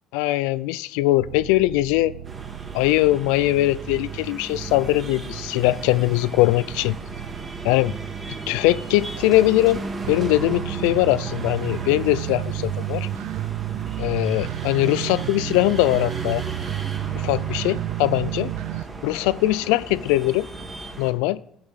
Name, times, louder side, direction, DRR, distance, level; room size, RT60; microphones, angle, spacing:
voice 1, 0.1-2.1 2.7-6.9 7.6-7.9 8.5-13.1 14.0-16.4 17.1-18.5 19.0-20.5 21.0-21.4, left 17 dB, 90° left, 19 dB, 0.4 m, -21 dB
sound 1, 1.2-18.8, right 15 dB, 85° right, 0.4 m, -32 dB
sound 2, 2.2-21.1, right 2 dB, 30° right, 3.1 m, -36 dB
15.0 x 7.8 x 5.7 m, 0.75 s
supercardioid pair, 100°, 0 cm